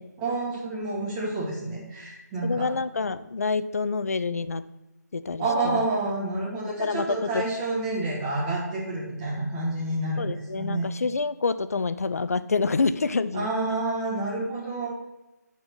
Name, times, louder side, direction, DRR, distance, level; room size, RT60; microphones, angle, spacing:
voice 1, 0.2-2.7 5.4-10.9 13.3-14.9, right 2 dB, 15° right, -6 dB, 1.6 m, -29 dB
voice 2, 2.4-4.6 5.1-5.9 6.8-7.5 10.2-13.5, left 4 dB, 55° left, 14 dB, 0.5 m, -27 dB
9.4 x 4.4 x 6.0 m, 1.0 s
figure-of-eight pair, 155°, 10 cm